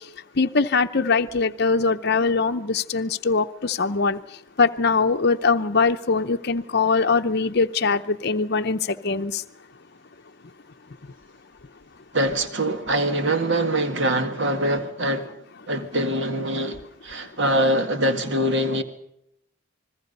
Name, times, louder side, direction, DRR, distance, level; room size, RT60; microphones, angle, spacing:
voice 1, 0.4-4.2 4.6-9.4, left 4 dB, 50° left, 0.7 m, -22 dB
voice 2, 12.1-15.3 15.7-18.8, right 1 dB, 55° right, 2.0 m, -23 dB
28.0 x 21.0 x 5.4 m
head